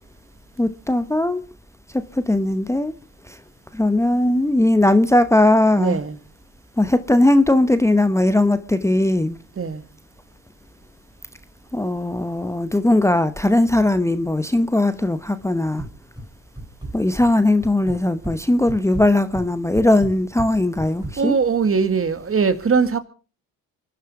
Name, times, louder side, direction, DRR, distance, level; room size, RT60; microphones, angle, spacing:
voice 1, 0.6-1.4 1.9-2.9 3.3-3.4 3.7-6.0 6.8-9.4 11.7-15.8 16.9-21.4, left 1 dB, 10° left, 1.0 m, -19 dB
voice 2, 5.8-6.2 9.6-9.8 21.2-23.0, right 5 dB, 35° right, 1.8 m, -20 dB
sound 1, 15.8-16.3 16.6-17.3 17.6-18.4 18.7-21.2, right 2 dB, 10° right, 4.1 m, -33 dB
24.5 x 10.5 x 4.8 m
supercardioid pair, 70°, 37 cm